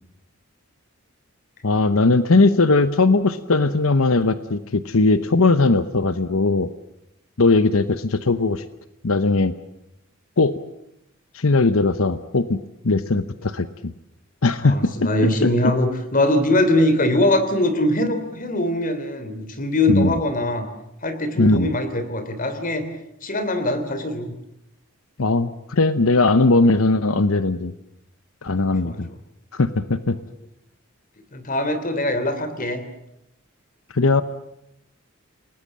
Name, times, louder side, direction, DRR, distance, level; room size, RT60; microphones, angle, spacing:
voice 1, 1.6-6.7 7.4-8.6 9.0-9.5 10.4-10.5 11.3-12.6 12.8-13.9 14.4-14.9 15.4-15.7 19.9-20.1 21.4-21.7 25.2-27.7 28.4-29.1 29.5-30.2 33.9-34.2, left 3 dB, 85° left, 12 dB, 1.0 m, -19 dB
voice 2, 14.6-20.7 21.0-22.8 23.2-24.3 28.6-29.0 31.3-32.8, left 1 dB, 40° left, 10 dB, 3.2 m, -22 dB
29.0 x 19.0 x 7.6 m, 0.82 s
head